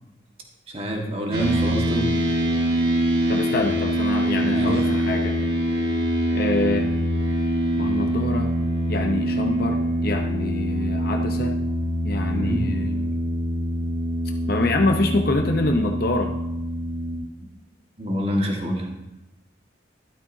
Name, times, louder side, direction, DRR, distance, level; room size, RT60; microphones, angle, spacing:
voice 1, 0.7-2.1 4.4-4.8 12.3-12.7 18.0-18.9, equal, 30° right, 1 dB, 1.6 m, -27 dB
sound 1, 1.3-17.2, equal, 55° right, 2.0 m, -24 dB
voice 2, 3.3-5.3 6.3-6.9 7.8-8.5 8.9-11.5 12.0-13.1 14.5-16.3, left 2 dB, 50° left, 3 dB, 0.8 m, -25 dB
12.5 x 12.0 x 2.7 m, 0.97 s
head